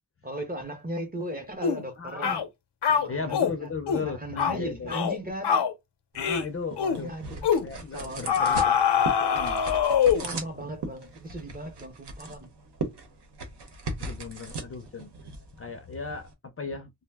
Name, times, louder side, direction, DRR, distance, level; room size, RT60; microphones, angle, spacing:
voice 1, 0.2-2.4 2.9-3.7 4.0-5.7 6.9-7.5 7.9-9.1 10.2-12.5, right 1 dB, 25° right, 0.6 m, -37 dB
sound 1, 1.6-1.8 2.2-2.5 2.8-3.5 3.9-4.1 4.4-4.6 4.9-5.2 5.4-5.7 6.2-6.5 6.8-7.0 7.4-7.7 8.3-10.3, left 7 dB, 85° left, 0.6 m, -24 dB
voice 2, 2.0-2.4 3.1-4.9 6.2-7.1 7.6-9.6 10.2-10.4 10.7-10.8 14.0-15.1 15.6-16.9, left 4 dB, 35° left, 0.4 m, -36 dB
sound 2, 6.1-16.3, right 3 dB, 80° right, 0.8 m, -39 dB
2.5 x 2.0 x 3.3 m
wide cardioid pair, 160°, 40 cm